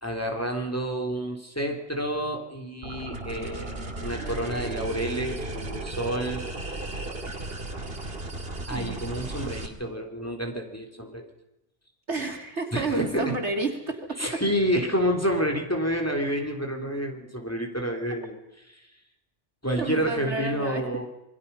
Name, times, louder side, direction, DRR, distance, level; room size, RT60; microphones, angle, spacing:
voice 1, 0.0-7.3 8.7-11.3 12.7-13.4 14.2-18.4 18.7-18.9 19.6-21.1, equal, 15° left, 2 dB, 3.3 m, -29 dB
sound 1, 2.8-9.7, right 2 dB, 60° right, 2.8 m, -35 dB
voice 2, 8.7-9.3 12.1-14.4 18.1-18.2 19.8-21.1, right 3 dB, 80° right, 3 dB, 3.3 m, -31 dB
27.5 x 22.0 x 5.6 m, 0.91 s
omnidirectional pair, 1.2 m